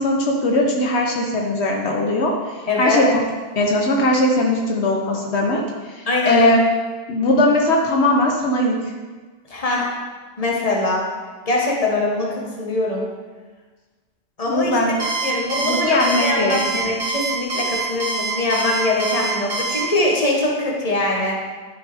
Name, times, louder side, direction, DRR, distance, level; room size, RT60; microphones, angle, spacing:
voice 1, 0.0-2.3 2.8-3.2 3.5-5.6 5.9-6.6 7.1-8.8 14.5-14.9 15.6-16.9, left 1 dB, 80° left, 0 dB, 1.3 m, -19 dB
voice 2, 2.7-3.0 6.1-6.5 9.5-9.9 10.4-11.1 11.5-13.1 14.4-14.7 15.0-21.4, left 2 dB, 35° left, -2 dB, 1.6 m, -22 dB
Alarm, 15.0-19.8, right 3 dB, 70° right, 1.9 m, -25 dB
10.5 x 6.9 x 3.5 m, 1.4 s
omnidirectional pair, 1.1 m